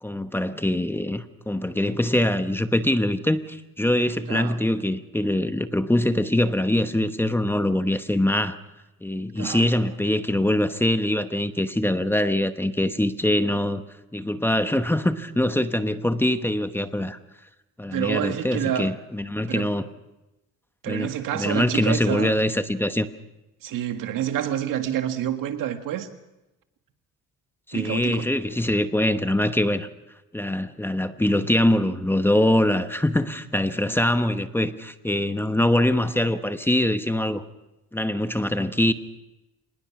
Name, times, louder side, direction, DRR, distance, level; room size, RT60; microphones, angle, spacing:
voice 1, 0.0-8.6 9.0-13.8 14.1-17.2 17.8-19.9 20.9-23.1 27.7-29.9 30.3-37.4 37.9-38.9, left 1 dB, 5° left, 0.9 m, -23 dB
voice 2, 9.4-9.8 17.9-18.9 19.5-19.7 20.8-22.4 23.6-26.1 27.7-28.2, right 10 dB, 85° right, 1.9 m, -28 dB
25.5 x 20.0 x 6.0 m
cardioid pair, 130°, 32 cm